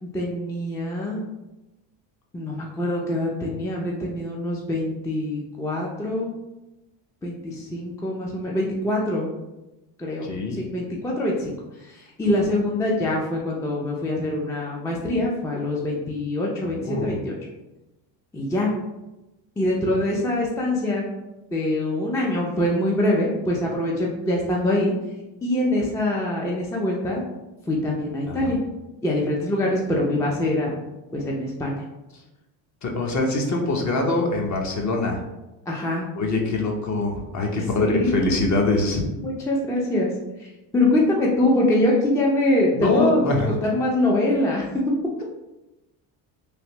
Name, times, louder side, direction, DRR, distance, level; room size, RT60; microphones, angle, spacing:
voice 1, 0.0-1.2 2.3-6.3 7.2-9.3 10.0-11.5 11.9-17.3 18.3-18.7 19.6-21.0 21.5-24.9 25.4-27.2 27.7-28.6 29.0-30.7 31.1-31.7 35.7-36.1 37.9-38.6 39.2-40.1 40.4-44.7, left 1 dB, 5° left, -3 dB, 0.4 m, -24 dB
voice 2, 10.2-10.6 16.6-17.1 28.3-28.5 32.8-35.2 36.2-39.0 42.7-43.6, left 2 dB, 35° left, 1 dB, 0.7 m, -23 dB
3.3 x 2.5 x 2.9 m, 1.0 s
supercardioid pair, 90°, 49 cm